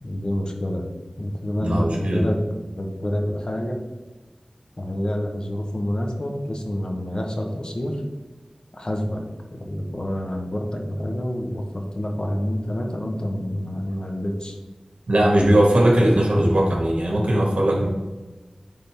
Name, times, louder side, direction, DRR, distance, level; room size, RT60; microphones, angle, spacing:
voice 1, 0.0-0.9 1.2-2.4 2.8-3.8 4.8-8.0 8.7-9.2 9.5-14.6, left 1 dB, 45° left, 2 dB, 1.2 m, -27 dB
voice 2, 1.6-2.3 15.1-17.9, right 1 dB, 70° right, -1 dB, 1.7 m, -19 dB
10.0 x 3.8 x 3.6 m, 1.2 s
wide cardioid pair, 60°, 2 cm